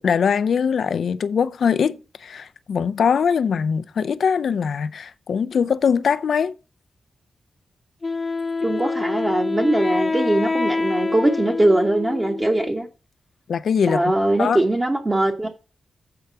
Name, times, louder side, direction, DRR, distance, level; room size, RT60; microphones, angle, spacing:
voice 1, 0.0-6.5 13.5-14.0 14.4-14.6, left 6 dB, 70° left, 0.5 m, -21 dB
Wind instrument woodwind instrument, 8.0-12.8, left 3 dB, 30° left, 0.8 m, -26 dB
voice 2, 8.6-12.9 13.9-15.5, right 1 dB, 20° right, 1.1 m, -21 dB
7.8 x 4.6 x 6.8 m
wide cardioid pair, 115°, 0 cm